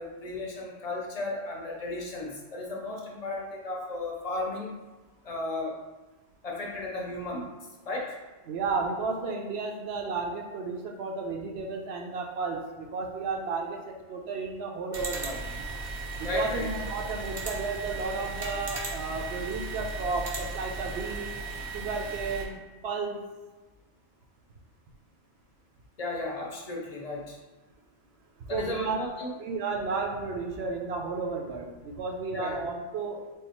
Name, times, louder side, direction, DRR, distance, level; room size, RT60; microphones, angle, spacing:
voice 1, 0.0-4.7 5.2-5.8 6.4-7.5 7.9-8.1 16.2-16.7 26.0-27.4 28.5-29.4 32.3-32.6, left 2 dB, 40° left, -2 dB, 0.7 m, -34 dB
voice 2, 8.5-15.5 16.1-21.3 21.7-23.2 28.5-29.0 29.4-33.2, right 4 dB, 70° right, 2 dB, 0.8 m, -33 dB
sound 1, 14.9-22.4, right 3 dB, 35° right, 0.4 m, -36 dB
3.7 x 2.4 x 4.2 m, 1.2 s
omnidirectional pair, 1.2 m